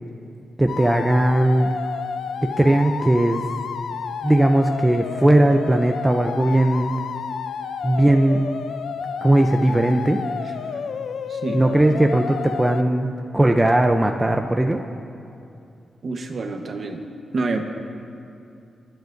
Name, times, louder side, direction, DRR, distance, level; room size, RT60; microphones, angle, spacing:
voice 1, 0.6-1.7 2.4-3.4 4.2-6.9 7.8-8.4 9.2-10.2 11.5-14.8, right 1 dB, 10° right, 4 dB, 0.5 m, -18 dB
sound 1, 0.7-12.8, left 6 dB, 75° left, 0.5 m, -31 dB
voice 2, 11.3-11.6 16.0-17.0 17.3-17.6, right 3 dB, 45° right, 4 dB, 1.0 m, -27 dB
27.0 x 10.5 x 2.6 m, 2.6 s
wide cardioid pair, 125°, 0 cm